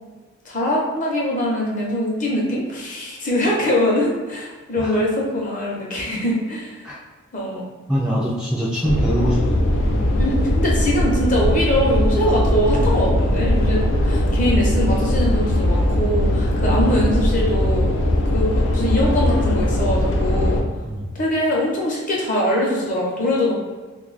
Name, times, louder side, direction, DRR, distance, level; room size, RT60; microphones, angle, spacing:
voice 1, 0.4-6.8 7.3-7.7 10.2-18.0 18.3-20.6 21.1-23.5, left 1 dB, 40° left, -3 dB, 0.8 m, -22 dB
voice 2, 7.9-9.9 20.8-21.1, equal, 5° right, -6 dB, 0.3 m, -23 dB
sound 1, 8.8-20.6, left 1 dB, 65° left, 0.4 m, -19 dB
2.7 x 2.3 x 3.9 m, 1.3 s
head